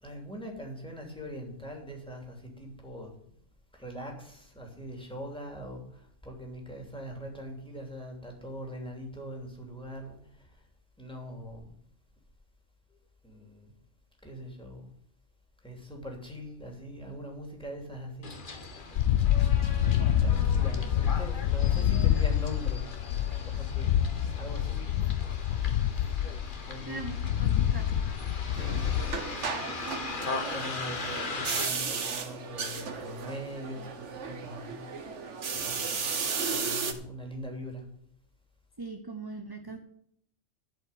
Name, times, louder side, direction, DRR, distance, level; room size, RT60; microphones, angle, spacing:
voice 1, 0.0-3.1 3.7-10.6 11.0-11.7 13.2-13.7 14.2-14.9 15.6-18.7 20.2-22.8 23.4-24.9 26.7-27.1 28.5-28.8 29.2-29.6 30.5-34.8 35.5-36.1 36.5-37.8, equal, 5° left, 1 dB, 2.9 m, -42 dB
Bus, 18.2-31.7, left 3 dB, 45° left, 1.5 m, -40 dB
sound 1, 19.0-29.2, left 10 dB, 90° left, 1.0 m, -27 dB
voice 2, 20.2-21.0 21.7-22.0 26.9-28.0 38.8-39.8, right 3 dB, 20° right, 5 dB, 0.8 m, -42 dB
sound 2, 28.6-36.9, right 5 dB, 70° right, 1.5 m, -35 dB
12.0 x 5.5 x 8.7 m, 0.69 s
omnidirectional pair, 1.3 m